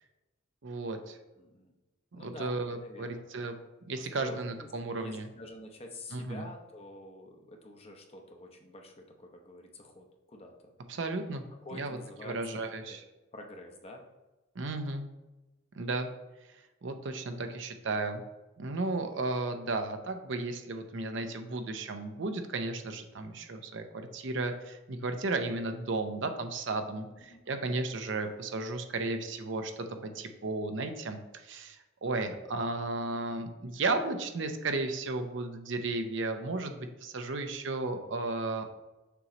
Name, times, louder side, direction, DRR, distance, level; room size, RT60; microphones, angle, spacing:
voice 1, 0.6-1.2 2.1-3.5 3.9-5.3 6.1-6.5 10.9-11.4 11.7-13.0 14.6-15.1 15.7-16.1 16.8-18.2 18.6-38.6, right 2 dB, 65° right, 7 dB, 0.6 m, -34 dB
voice 2, 1.4-1.7 2.1-3.2 4.0-10.5 11.6-13.0 13.3-14.0 26.9-27.6, left 1 dB, 30° left, 2 dB, 0.7 m, -48 dB
6.8 x 3.0 x 5.0 m, 1.1 s
head